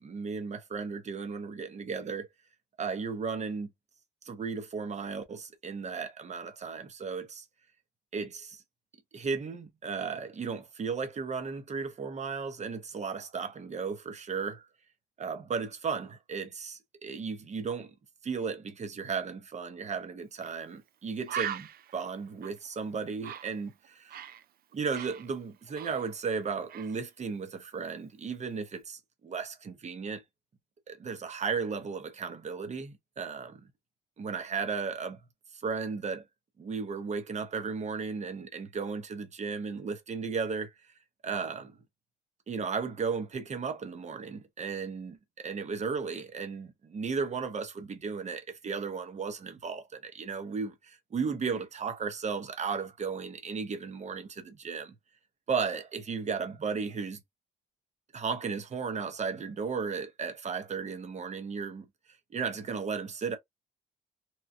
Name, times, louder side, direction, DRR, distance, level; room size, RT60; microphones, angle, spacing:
voice 1, 0.0-2.3 2.8-3.7 4.2-7.4 8.1-8.6 9.1-14.7 15.2-17.9 18.2-24.2 24.7-30.2 30.9-33.7 34.2-35.2 35.5-36.2 36.6-40.7 41.2-41.8 42.5-45.2 45.4-54.9 55.5-57.2 58.1-61.9 62.3-63.4, right 5 dB, 35° right, 0.8 m, -35 dB
Bird, 20.4-20.6 20.9-21.0 21.3-24.4 24.7-26.4 26.7-27.0, right 9 dB, 55° right, 0.4 m, -40 dB
3.0 x 2.2 x 2.6 m
cardioid pair, 90°, 19 cm